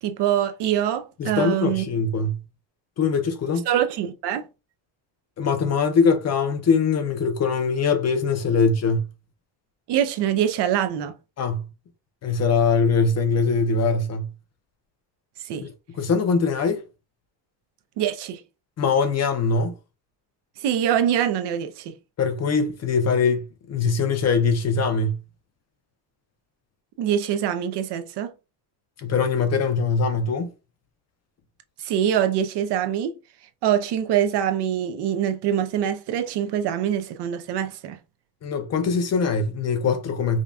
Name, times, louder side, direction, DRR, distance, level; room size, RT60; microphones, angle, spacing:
voice 1, 0.0-1.8 3.7-4.5 9.9-11.2 15.4-15.7 18.0-18.4 20.6-22.0 27.0-28.3 31.8-33.2 33.6-38.0, right 10 dB, 65° right, 0.7 m, -24 dB
voice 2, 1.2-2.4 3.0-3.7 5.4-9.1 11.4-11.7 12.2-14.3 16.0-16.8 18.8-19.8 22.2-25.2 29.0-30.5 38.4-40.4, left 4 dB, 35° left, 0.6 m, -22 dB
5.1 x 2.2 x 2.6 m
cardioid pair, 145°, 44 cm